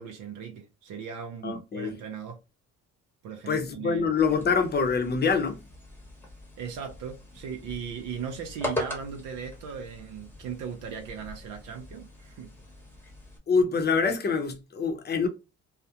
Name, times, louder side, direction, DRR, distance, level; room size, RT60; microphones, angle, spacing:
voice 1, 0.0-2.4 3.2-4.1 6.6-12.5, right 7 dB, 85° right, 0.6 m, -38 dB
voice 2, 1.4-1.9 3.5-5.6 13.5-15.3, left 5 dB, 35° left, 0.6 m, -25 dB
sound 1, 4.2-13.4, left 1 dB, 5° left, 0.9 m, -40 dB
2.4 x 2.1 x 2.8 m
cardioid pair, 90°, 30 cm